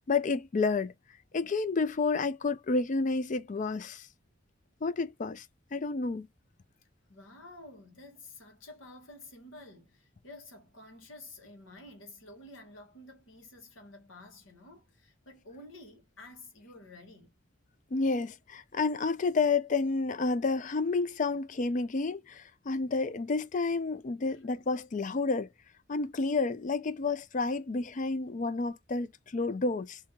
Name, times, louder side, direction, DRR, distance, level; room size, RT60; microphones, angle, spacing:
voice 1, 0.1-0.9 1.3-4.1 4.8-5.5 5.7-6.3 17.9-25.5 25.9-30.0, left 3 dB, 40° left, 0.4 m, -30 dB
voice 2, 7.1-17.4 24.3-24.4, left 2 dB, 80° left, 1.4 m, -51 dB
3.6 x 2.8 x 2.9 m
head